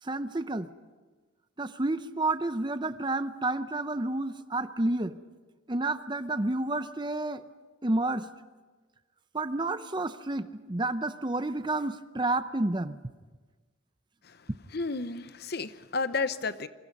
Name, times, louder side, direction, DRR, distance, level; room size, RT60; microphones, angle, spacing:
voice 1, 0.0-0.7 1.6-5.2 5.7-7.4 7.8-8.3 9.3-13.0, right 2 dB, 20° right, 12 dB, 0.6 m, -30 dB
voice 2, 14.7-16.7, left 4 dB, 50° left, 12 dB, 0.9 m, -32 dB
27.0 x 24.5 x 5.4 m, 1.3 s
head